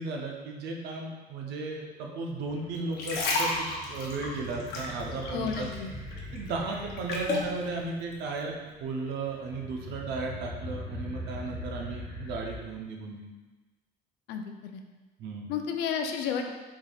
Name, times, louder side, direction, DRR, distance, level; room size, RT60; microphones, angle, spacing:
voice 1, 0.0-5.7 6.3-13.2 15.2-15.5, right 3 dB, 80° right, 1 dB, 0.7 m, -35 dB
sound 1, 2.5-12.6, left 1 dB, 10° left, 1.3 m, -42 dB
sound 2, 2.8-5.8 6.1-7.5 8.1-8.3, left 3 dB, 70° left, 0.8 m, -32 dB
voice 2, 5.3-5.9 14.3-14.8 15.5-16.5, left 7 dB, 85° left, 4 dB, 0.5 m, -32 dB
4.9 x 3.5 x 2.3 m, 1.2 s
cardioid pair, 110°, 17 cm